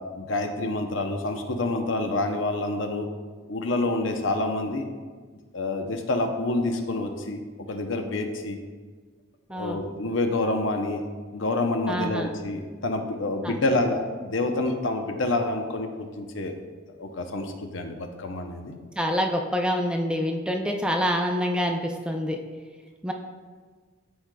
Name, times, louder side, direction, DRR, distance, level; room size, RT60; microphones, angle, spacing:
voice 1, 0.0-3.1 3.5-4.8 5.5-7.4 7.7-8.6 9.5-11.0 11.3-16.6 17.0-18.8, left 2 dB, 70° left, 5 dB, 0.7 m, -27 dB
voice 2, 11.9-12.3 13.4-13.5 19.0-22.4 23.0-23.1, equal, 5° right, 2 dB, 0.4 m, -26 dB
12.0 x 4.7 x 2.2 m, 1.5 s
head